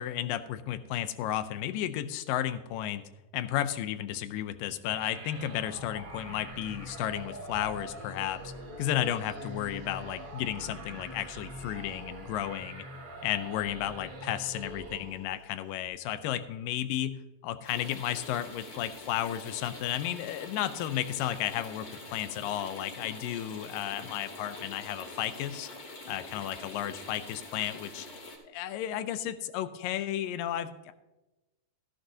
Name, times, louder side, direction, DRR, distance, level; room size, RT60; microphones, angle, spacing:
voice 1, 0.0-3.0 3.3-8.5 8.8-12.8 13.2-25.7 26.1-28.1 28.5-30.9, left 12 dB, 80° left, 12 dB, 2.2 m, -33 dB
sound 1, 4.9-15.4, right 1 dB, 35° right, 2.0 m, -44 dB
sound 2, 17.6-28.4, left 2 dB, 40° left, 2.0 m, -45 dB
14.0 x 11.5 x 2.7 m, 1.0 s
omnidirectional pair, 4.1 m